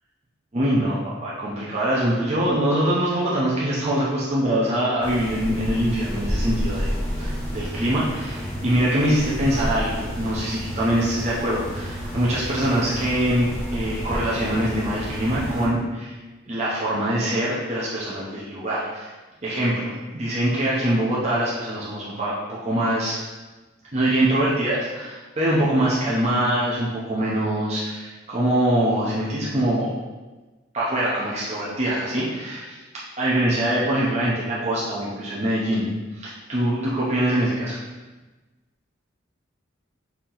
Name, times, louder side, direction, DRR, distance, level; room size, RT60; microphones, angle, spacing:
voice 1, 0.5-6.9 7.2-16.2 16.5-19.1 19.4-23.2 23.9-29.9 30.7-32.8 33.2-35.9 36.1-37.8, right 1 dB, 35° right, -7 dB, 0.7 m, -23 dB
sound 1, 5.0-15.7, equal, 15° left, 1.0 m, -30 dB
4.3 x 2.9 x 3.9 m, 1.2 s
head